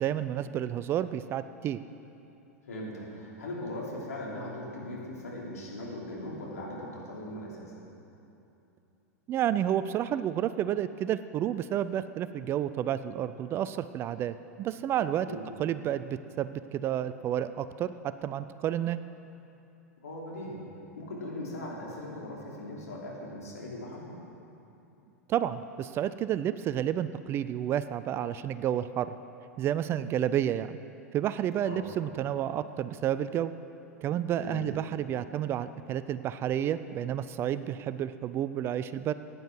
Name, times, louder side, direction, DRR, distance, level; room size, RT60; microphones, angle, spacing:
voice 1, 0.0-1.8 9.3-15.3 15.6-19.0 25.3-29.1 29.6-30.7 31.1-33.5 34.0-39.1, right 10 dB, 30° right, 13 dB, 0.4 m, -30 dB
voice 2, 2.7-7.7 15.3-15.4 20.0-20.6 20.9-24.1 31.6-31.9 34.4-34.6, left 1 dB, 70° left, -4 dB, 3.4 m, -39 dB
15.5 x 9.4 x 6.1 m, 2.9 s
figure-of-eight pair, 90°, 9 cm